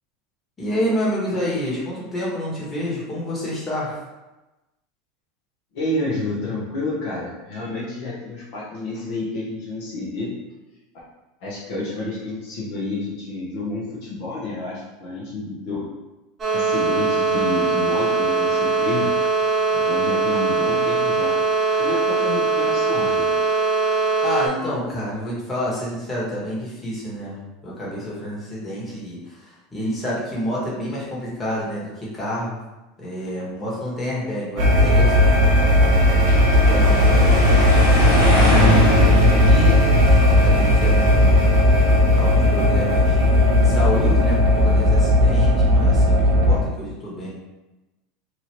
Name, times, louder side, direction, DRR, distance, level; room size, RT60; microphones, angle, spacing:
voice 1, 0.6-4.0 24.2-32.6 33.0-35.8 36.7-37.8 38.5-41.4 42.2-47.3, equal, 20° left, -7 dB, 1.3 m, -28 dB
voice 2, 5.7-10.3 10.9-11.0 11.4-15.9 16.5-19.1 19.7-21.3 21.8-23.3, left 2 dB, 65° left, -5 dB, 0.8 m, -29 dB
sound 1, 16.4-24.5, right 4 dB, 30° right, 0.8 m, -21 dB
sound 2, 34.6-46.6, left 1 dB, 60° right, 0.7 m, -16 dB
sound 3, 35.7-41.9, left 1 dB, 85° left, 1.1 m, -23 dB
2.9 x 2.5 x 2.9 m, 1.1 s
supercardioid pair, 105°, 0 cm